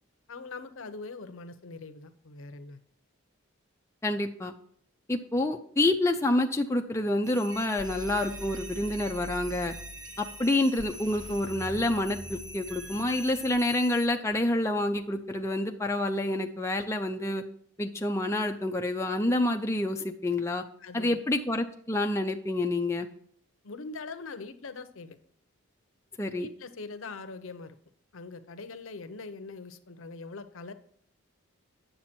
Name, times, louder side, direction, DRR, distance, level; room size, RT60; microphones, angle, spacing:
voice 1, 0.3-2.8 20.8-21.2 23.6-25.2 26.4-27.8 28.1-30.7, left 3 dB, 65° left, 11 dB, 0.7 m, -42 dB
voice 2, 4.0-4.5 5.1-9.7 10.2-17.4 17.8-20.6 20.9-23.1 26.2-26.5, left 1 dB, 10° left, 3 dB, 0.4 m, -28 dB
sound 1, 7.2-14.1, equal, 20° right, 1.2 m, -46 dB
sound 2, 7.5-13.6, right 1 dB, 65° right, 1.1 m, -44 dB
8.9 x 6.9 x 4.3 m, 0.62 s
head